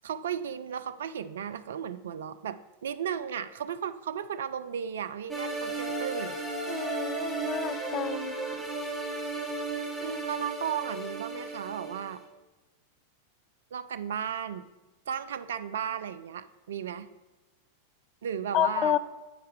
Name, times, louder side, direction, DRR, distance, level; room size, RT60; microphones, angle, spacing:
voice 1, 0.0-6.4 10.0-12.2 13.7-14.6 15.1-17.1 18.2-19.0, right 8 dB, 60° right, 14 dB, 0.3 m, -35 dB
sound 1, 5.3-12.2, right 3 dB, ahead, 1.5 m, -34 dB
voice 2, 6.7-8.4 18.5-19.0, left 11 dB, 35° left, 12 dB, 0.3 m, -29 dB
8.7 x 5.5 x 3.2 m, 1.2 s
figure-of-eight pair, 90°, 0 cm